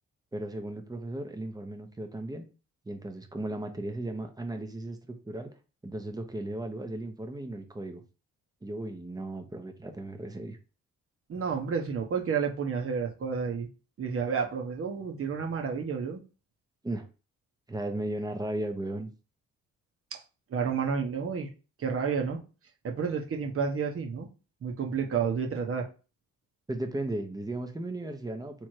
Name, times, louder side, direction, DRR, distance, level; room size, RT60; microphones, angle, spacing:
voice 1, 0.3-2.5 2.9-5.0 5.2-5.5 5.8-8.0 8.6-10.6 16.8-17.0 17.7-19.1 26.7-28.7, right 1 dB, 10° right, 6 dB, 0.9 m, -36 dB
voice 2, 11.3-13.7 14.0-16.2 20.5-21.5 21.8-22.4 22.8-24.3 24.6-25.9, right 6 dB, 45° right, 2 dB, 1.1 m, -30 dB
3.5 x 3.2 x 4.5 m, 0.34 s
cardioid pair, 90°, 30 cm